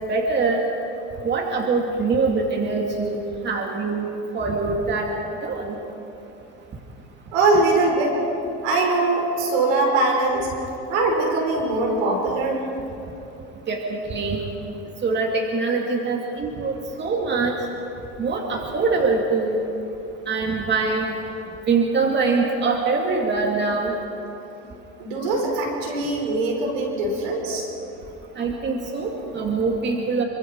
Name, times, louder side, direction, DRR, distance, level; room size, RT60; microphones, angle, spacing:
voice 1, 0.1-0.6 1.2-3.2 3.4-4.1 4.3-5.1 5.4-5.8 13.7-14.4 15.0-17.5 18.2-19.6 20.3-21.1 21.7-23.9 28.4-30.2, right 4 dB, 35° right, 1 dB, 2.7 m, -23 dB
voice 2, 7.3-8.1 8.6-10.5 10.9-12.6 25.0-27.7, right 2 dB, 85° right, 0 dB, 5.9 m, -22 dB
27.0 x 24.5 x 4.8 m, 2.9 s
cardioid pair, 115°, 31 cm